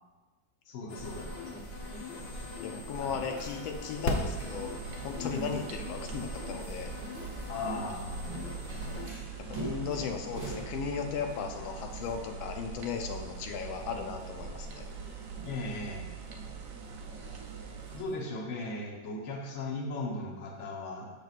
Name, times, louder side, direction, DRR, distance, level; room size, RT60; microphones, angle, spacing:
voice 1, 0.7-1.4 3.0-3.2 5.2-5.6 7.5-8.3 15.4-16.0 17.9-21.1, left 2 dB, 50° left, 0 dB, 1.0 m, -37 dB
sound 1, 0.9-9.1, left 1 dB, 65° left, 0.6 m, -39 dB
sound 2, 0.9-18.1, right 1 dB, 10° right, 1.4 m, -48 dB
voice 2, 2.6-6.9 9.5-14.9, left 6 dB, 90° left, 4 dB, 1.5 m, -36 dB
sound 3, 4.1-18.0, right 6 dB, 70° right, 0.8 m, -43 dB
6.9 x 6.5 x 2.4 m, 1.2 s
omnidirectional pair, 2.1 m